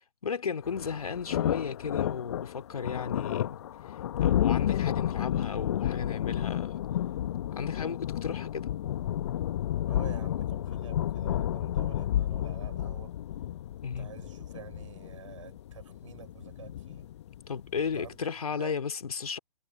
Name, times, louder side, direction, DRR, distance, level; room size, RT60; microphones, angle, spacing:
voice 1, 0.2-3.6 4.2-6.7 7.5-8.8 13.8-14.1 17.5-19.4, left 6 dB, 60° left, 2.7 m, -34 dB
sound 1, 0.6-18.1, left 11 dB, 45° left, 1.6 m, -31 dB
voice 2, 9.9-13.1 14.0-17.1 17.8-18.8, right 9 dB, 50° right, 7.1 m, -48 dB
figure-of-eight pair, 125°, 21 cm